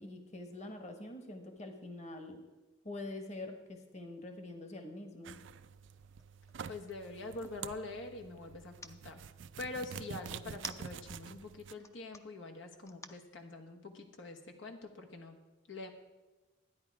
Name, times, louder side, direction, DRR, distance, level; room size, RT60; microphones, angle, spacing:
voice 1, 0.0-2.4 2.8-5.4, left 2 dB, 35° left, 6 dB, 1.3 m, -45 dB
sound 1, 5.2-11.7, right 7 dB, 80° right, 0.4 m, -48 dB
sound 2, 6.0-7.6 8.5-8.9 10.3-11.3 11.7-12.2 12.9-13.2, left 3 dB, 15° left, 0.5 m, -49 dB
voice 2, 6.7-9.2 9.6-15.4 15.7-15.9, left 2 dB, 90° left, 3 dB, 1.3 m, -45 dB
12.5 x 9.8 x 4.8 m, 1.2 s
head